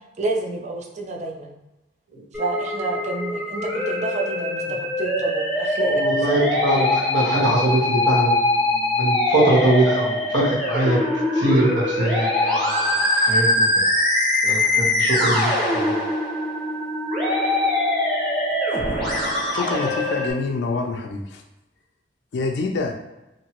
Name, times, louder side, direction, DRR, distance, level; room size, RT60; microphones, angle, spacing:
voice 1, 0.2-1.5 2.3-6.5, right 2 dB, 40° right, 1 dB, 0.5 m, -29 dB
Musical instrument, 2.3-20.3, left 1 dB, 5° left, 1.0 m, -22 dB
voice 2, 5.8-11.0 11.3-12.9 13.1-13.7 14.4-15.9, right 1 dB, 75° right, -6 dB, 1.2 m, -22 dB
voice 3, 19.5-21.4 22.3-22.9, left 3 dB, 70° left, 3 dB, 0.4 m, -26 dB
2.9 x 2.6 x 2.9 m, 0.97 s
head